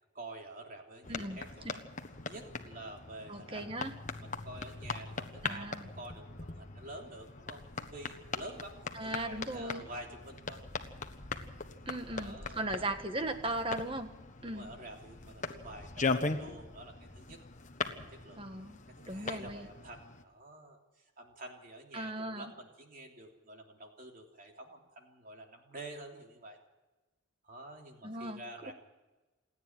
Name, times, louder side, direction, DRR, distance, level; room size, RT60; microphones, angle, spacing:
voice 1, 0.1-1.9 2.2-3.7 4.2-10.6 12.1-12.9 14.3-17.4 18.0-18.5 19.0-26.6 27.4-28.7, right 1 dB, 45° right, 2 dB, 3.2 m, -49 dB
sound 1, 1.0-20.2, left 3 dB, 35° left, 1.4 m, -40 dB
voice 2, 1.1-1.4 3.3-3.9 5.4-5.9 8.9-9.9 11.9-14.1 14.4-14.7 18.4-18.8 19.1-19.7 21.9-22.5 28.0-28.7, right 1 dB, 25° right, 8 dB, 1.5 m, -38 dB
28.0 x 9.7 x 9.9 m, 1.2 s
head